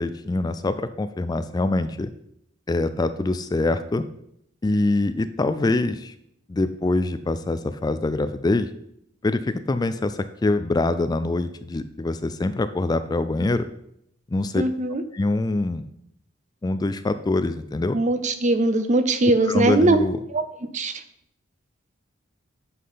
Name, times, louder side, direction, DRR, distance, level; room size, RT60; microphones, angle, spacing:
voice 1, 0.0-2.1 2.7-4.0 4.6-6.1 6.5-8.7 9.2-13.7 14.3-14.6 15.1-15.9 16.6-18.0 19.4-20.2, left 2 dB, 20° left, 11 dB, 0.3 m, -24 dB
voice 2, 14.6-15.0 17.9-20.0 20.3-20.4 20.7-20.9, right 2 dB, 40° right, 10 dB, 0.7 m, -20 dB
8.4 x 5.8 x 5.6 m, 0.75 s
head